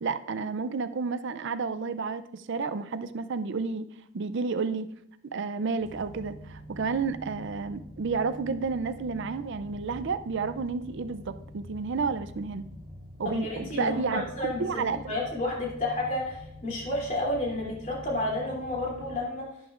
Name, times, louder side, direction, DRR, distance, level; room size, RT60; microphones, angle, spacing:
voice 1, 0.0-3.9 4.1-4.9 5.2-12.7 13.2-15.0, right 4 dB, 55° right, 12 dB, 0.4 m, -31 dB
sound 1, 5.7-19.1, equal, 35° right, 1.6 m, -46 dB
voice 2, 13.2-19.5, left 1 dB, 35° left, -4 dB, 2.9 m, -31 dB
11.0 x 10.5 x 2.5 m, 0.78 s
head